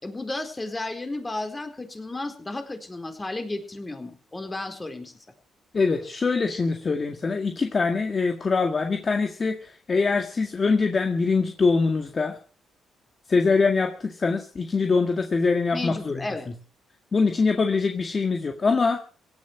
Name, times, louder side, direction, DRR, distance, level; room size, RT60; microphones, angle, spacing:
voice 1, 0.0-5.1 15.7-16.5, left 2 dB, 20° left, 6 dB, 4.3 m, -33 dB
voice 2, 5.7-12.4 13.3-16.2 17.1-19.0, left 4 dB, 35° left, 5 dB, 1.9 m, -23 dB
17.5 x 11.5 x 6.0 m, 0.39 s
cardioid pair, 90°, 0 cm